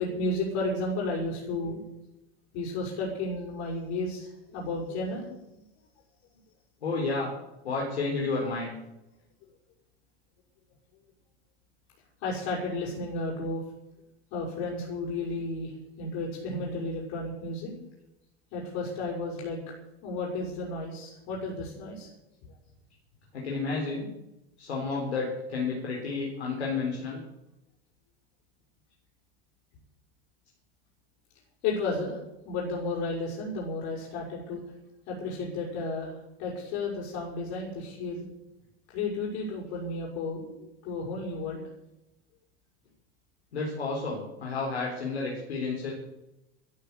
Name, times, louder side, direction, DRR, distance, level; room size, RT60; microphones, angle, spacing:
voice 1, 0.0-1.8 2.5-5.4 12.2-13.6 14.3-15.7 16.0-17.7 18.5-19.6 20.0-22.1 31.6-32.2 32.4-34.6 35.1-38.2 38.9-41.6, left 2 dB, 60° left, -4 dB, 6.2 m, -33 dB
voice 2, 6.8-7.3 7.6-8.7 23.3-24.1 24.6-27.2 43.5-45.9, left 3 dB, 90° left, -2 dB, 4.3 m, -31 dB
13.0 x 11.5 x 8.4 m, 0.91 s
hypercardioid pair, 95°, 32 cm